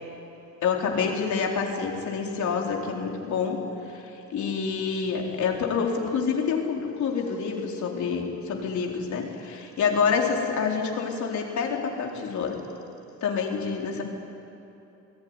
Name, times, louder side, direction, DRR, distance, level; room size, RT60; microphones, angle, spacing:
voice 1, 0.6-12.6 13.2-14.0, left 5 dB, 70° left, 0 dB, 4.3 m, -27 dB
27.5 x 19.0 x 9.8 m, 3.0 s
cardioid pair, 90°, 30 cm